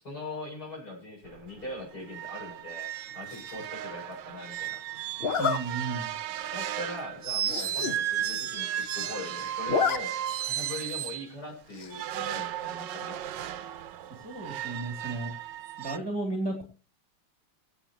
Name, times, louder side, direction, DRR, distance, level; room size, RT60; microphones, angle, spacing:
voice 1, 0.0-2.9 3.1-4.8 6.5-10.1 10.4-13.2, left 1 dB, 45° left, -1 dB, 7.7 m, -41 dB
sound 1, 1.3-1.4 1.7-1.8 2.1-11.3 11.9-16.0, right 11 dB, 70° right, 1.3 m, -35 dB
Zipper (clothing), 3.3-3.7 5.2-5.6 6.2-6.3 6.7-6.8 7.0-7.1 7.4-8.0 8.3-8.4 8.6-9.2 9.5-10.0 10.3-10.4 11.7-12.1, left 5 dB, 70° left, 0.5 m, -29 dB
voice 2, 5.4-6.1 14.2-15.3 15.8-16.6, right 2 dB, 10° right, -1 dB, 2.4 m, -33 dB
24.0 x 8.5 x 2.9 m, 0.35 s
omnidirectional pair, 2.4 m